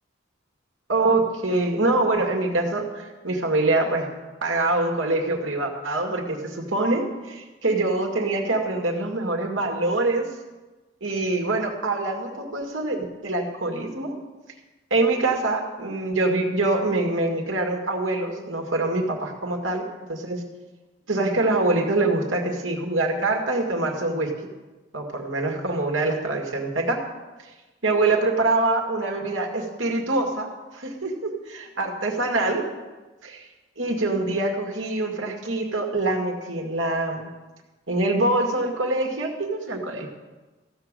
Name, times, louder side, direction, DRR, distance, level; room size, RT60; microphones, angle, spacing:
voice 1, 0.9-4.1 4.4-10.3 11.0-14.1 14.9-20.4 21.1-24.3 24.9-27.0 27.8-30.5 30.7-32.6 33.2-33.5 33.8-37.3 37.9-40.1, right 2 dB, 80° right, 1 dB, 2.1 m, -24 dB
15.0 x 6.9 x 7.6 m, 1.2 s
head